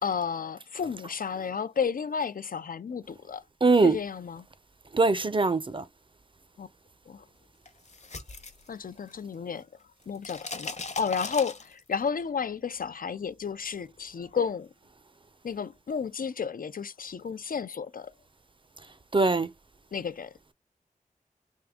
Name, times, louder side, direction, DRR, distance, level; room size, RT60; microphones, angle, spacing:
voice 1, 0.0-3.4 3.8-4.5 6.6-6.7 7.1-7.2 8.7-9.7 10.1-14.7 15.4-18.1 19.9-20.3, left 6 dB, 80° left, 0.5 m, -32 dB
voice 2, 3.6-4.0 4.9-5.8 19.1-19.5, right 3 dB, 35° right, 0.6 m, -22 dB
sound 1, 7.6-9.3 9.6-12.1, left 3 dB, 55° left, 0.8 m, -39 dB
3.6 x 2.6 x 3.5 m
wide cardioid pair, 55°, 14 cm